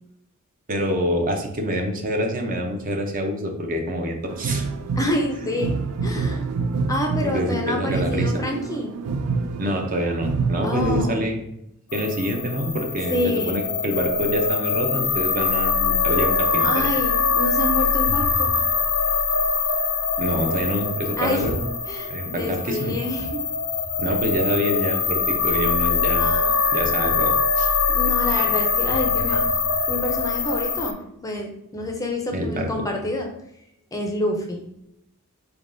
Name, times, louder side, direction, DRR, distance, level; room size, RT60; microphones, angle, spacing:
voice 1, 0.7-4.7 7.2-8.3 9.6-11.4 11.9-16.8 20.2-21.7 22.1-23.0 24.0-26.3 26.7-27.7 28.3-28.5 32.3-32.7, equal, 40° right, 3 dB, 0.6 m, -26 dB
sound 1, 4.3-11.1, right 4 dB, 85° right, 0.4 m, -27 dB
voice 2, 5.0-5.7 6.0-6.5 6.9-8.9 10.6-11.3 13.1-13.6 16.6-18.6 21.2-21.5 21.9-23.4 26.2-26.5 27.9-29.4 29.9-33.3 33.9-34.7, left 1 dB, 15° left, 2 dB, 0.5 m, -27 dB
sound 2, 11.9-30.9, left 5 dB, 75° left, 0.5 m, -23 dB
3.8 x 3.4 x 2.6 m, 0.81 s
head